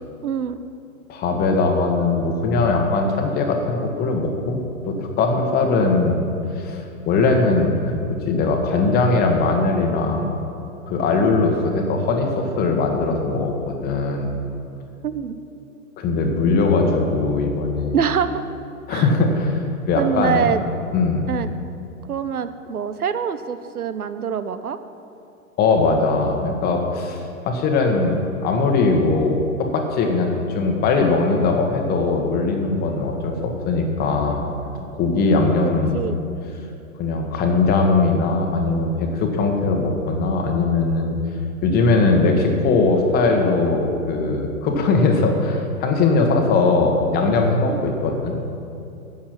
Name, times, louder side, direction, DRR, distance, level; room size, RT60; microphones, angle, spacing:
voice 1, 0.2-0.6 15.0-15.3 17.9-18.4 18.9-19.1 20.0-20.6 21.3-21.5 22.1-24.8 35.6-36.2 47.7-47.9, right 7 dB, 85° right, 12 dB, 0.7 m, -25 dB
voice 2, 1.1-6.2 6.6-10.3 10.9-14.3 16.0-18.0 18.9-20.5 20.9-21.3 25.6-34.4 34.8-36.0 37.0-41.2 41.6-48.4, left 3 dB, 20° left, 3 dB, 1.2 m, -20 dB
10.0 x 7.3 x 6.0 m, 2.7 s
hypercardioid pair, 120°, 43 cm